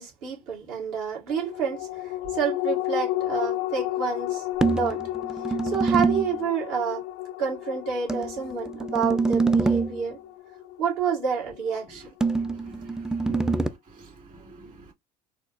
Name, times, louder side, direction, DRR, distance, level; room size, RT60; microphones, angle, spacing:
voice 1, 0.0-5.0 5.6-7.0 7.4-10.2 10.8-12.1 13.3-13.4, right 7 dB, 70° right, 1.7 m, -29 dB
sound 1, 1.3-12.1 12.5-12.6, left 15 dB, 75° left, 0.5 m, -32 dB
sound 2, 4.6-6.4 8.1-10.0 12.2-13.7, right 3 dB, 5° right, 0.3 m, -25 dB
voice 2, 12.4-13.3 14.0-14.9, right 2 dB, 40° right, 2.2 m, -48 dB
4.2 x 2.1 x 2.5 m
hypercardioid pair, 75°, 20 cm